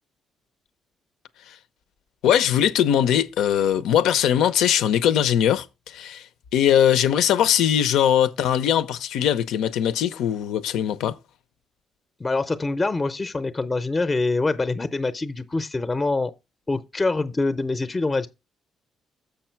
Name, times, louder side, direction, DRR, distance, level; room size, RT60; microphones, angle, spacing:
voice 1, 2.2-6.2 6.5-11.2, left 10 dB, 85° left, 0.7 m, -20 dB
voice 2, 12.2-16.3 16.7-18.3, left 3 dB, 25° left, 0.6 m, -25 dB
6.9 x 6.0 x 4.5 m
cardioid pair, 90°, 0 cm